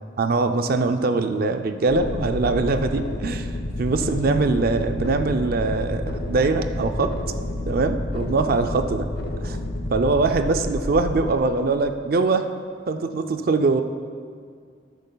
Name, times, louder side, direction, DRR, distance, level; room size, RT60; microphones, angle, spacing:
voice 1, 0.2-3.5 3.8-7.1 7.7-9.1 9.4-9.6 9.9-12.5 12.9-13.8, right 3 dB, 55° right, 8 dB, 0.4 m, -22 dB
sound 1, 1.9-11.3, left 1 dB, 60° left, 0.8 m, -30 dB
13.0 x 10.5 x 2.3 m, 2.1 s
head